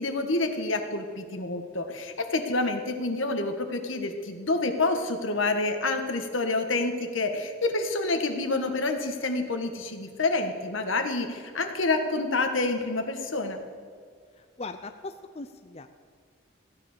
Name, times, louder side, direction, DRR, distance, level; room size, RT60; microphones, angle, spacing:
voice 1, 0.0-13.6, left 2 dB, 80° left, 6 dB, 1.6 m, -28 dB
voice 2, 14.6-15.9, left 3 dB, 30° left, 8 dB, 0.5 m, -39 dB
15.5 x 10.0 x 6.7 m, 2.1 s
head